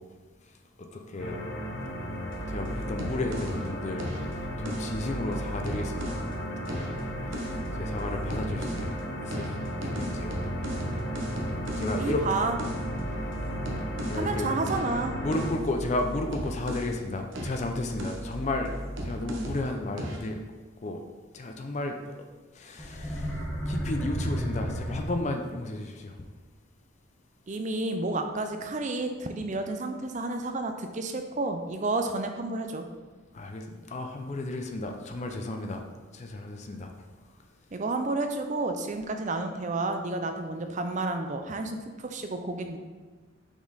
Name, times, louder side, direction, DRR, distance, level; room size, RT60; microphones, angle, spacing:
voice 1, 0.8-1.4 2.5-6.2 6.7-6.9 7.3-8.9 9.2-9.5 9.8-10.4 11.8-12.2 14.0-14.5 15.2-18.7 19.0-20.4 20.8-21.0 21.3-22.0 22.5-23.4 23.7-26.1 33.3-35.8 36.1-37.1, left 2 dB, 35° left, 4 dB, 0.4 m, -33 dB
sound 1, 1.2-15.5, equal, 70° left, 1.2 m, -35 dB
sound 2, 2.3-6.3 6.7-9.0 9.3-17.0 17.3-19.7 20.0-20.3, right 1 dB, 70° right, 0.9 m, -36 dB
voice 2, 12.0-12.6 14.2-15.2 27.5-32.8 37.7-42.8, right 2 dB, 35° right, 6 dB, 0.5 m, -31 dB
sound 3, 22.8-25.6, equal, 10° left, 1.2 m, -32 dB
5.9 x 4.2 x 3.9 m, 1.3 s
head